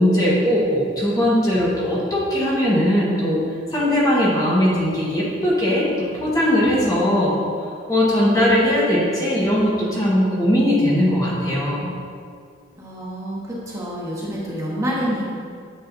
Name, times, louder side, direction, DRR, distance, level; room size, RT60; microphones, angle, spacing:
voice 1, 0.0-3.4 3.7-7.3 7.9-11.9, equal, 20° left, -6 dB, 1.4 m, -19 dB
voice 2, 12.8-15.3, equal, 15° right, -6 dB, 1.3 m, -27 dB
8.6 x 7.7 x 2.7 m, 2.2 s
head